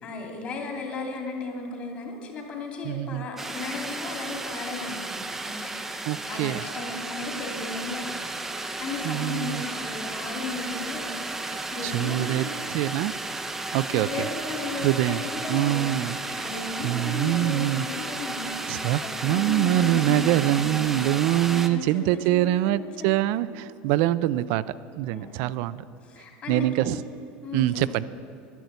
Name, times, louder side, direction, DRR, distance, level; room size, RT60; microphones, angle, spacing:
voice 1, 0.0-12.6 13.9-21.2 21.5-22.7 23.0-23.3 25.1-25.5 26.0-27.0 27.4-27.6, left 3 dB, 35° left, 2 dB, 2.5 m, -36 dB
voice 2, 2.8-3.3 6.1-6.6 9.0-9.6 11.5-13.1 13.7-14.3 14.8-16.5 16.8-17.8 18.7-24.6 24.9-25.8 26.5-27.0 27.5-28.1, right 14 dB, 65° right, 15 dB, 0.4 m, -25 dB
sound 1, 3.4-21.7, right 2 dB, 10° right, 0.6 m, -33 dB
11.5 x 10.5 x 8.0 m, 2.6 s
cardioid pair, 165°, 4 cm